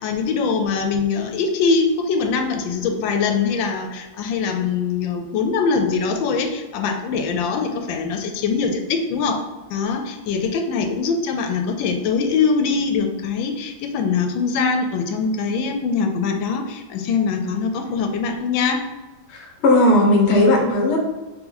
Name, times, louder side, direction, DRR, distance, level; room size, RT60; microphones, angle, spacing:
voice 1, 0.0-9.4 9.7-18.8, left 5 dB, 90° left, 5 dB, 1.3 m, -22 dB
voice 2, 19.3-21.0, left 1 dB, 50° left, 1 dB, 0.8 m, -16 dB
3.6 x 3.0 x 3.8 m, 1.2 s
omnidirectional pair, 2.0 m